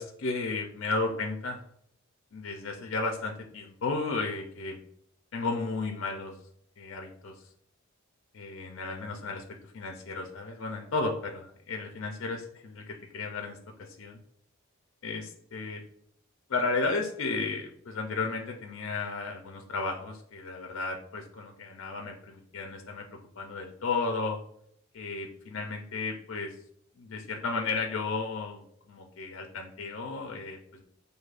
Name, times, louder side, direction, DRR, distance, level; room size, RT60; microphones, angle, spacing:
voice 1, 0.0-1.6 2.3-4.8 5.3-6.4 6.8-7.4 8.3-14.2 15.0-15.8 16.5-23.0 23.4-24.4 24.9-26.6 27.0-30.8, left 3 dB, 55° left, 3 dB, 0.4 m, -34 dB
6.1 x 2.6 x 2.4 m, 0.68 s
head